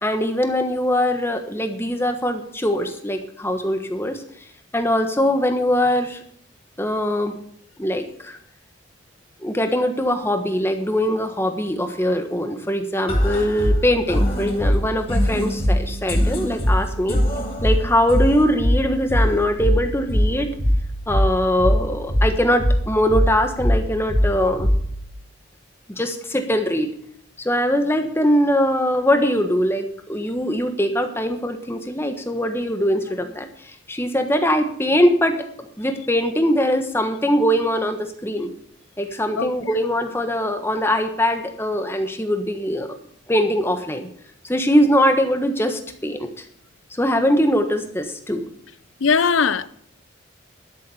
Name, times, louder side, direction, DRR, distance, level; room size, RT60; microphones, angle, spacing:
voice 1, 0.0-4.2 4.7-6.2 6.8-7.3 7.8-8.4 9.4-17.2 17.6-20.5 21.1-24.7 26.0-26.9 27.4-33.5 33.9-38.5 39.0-42.9 43.3-44.1 44.4-46.4 47.0-48.4, equal, 10° left, 1.3 m, -21 dB
sound 1, 13.1-25.1, equal, 30° left, 3.7 m, -22 dB
voice 2, 49.0-49.7, left 5 dB, 80° left, 0.6 m, -19 dB
12.5 x 7.5 x 7.1 m
head